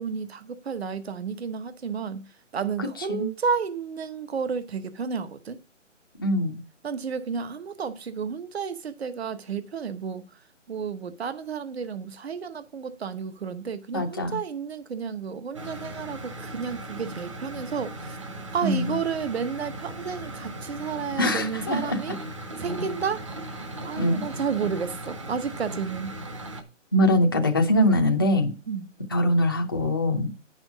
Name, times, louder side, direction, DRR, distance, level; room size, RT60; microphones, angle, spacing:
voice 1, 0.0-5.6 6.8-18.2 18.5-22.2 22.6-26.1 28.7-28.9, right 6 dB, 55° right, 1.1 m, -32 dB
voice 2, 6.2-6.6 13.9-14.4 18.6-19.0 21.2-22.0 24.0-24.2 26.9-28.5 29.1-30.3, left 1 dB, 20° left, 0.6 m, -22 dB
sound 1, 15.5-26.6, right 1 dB, 25° right, 0.9 m, -38 dB
9.5 x 6.2 x 4.8 m
hypercardioid pair, 170°, 38 cm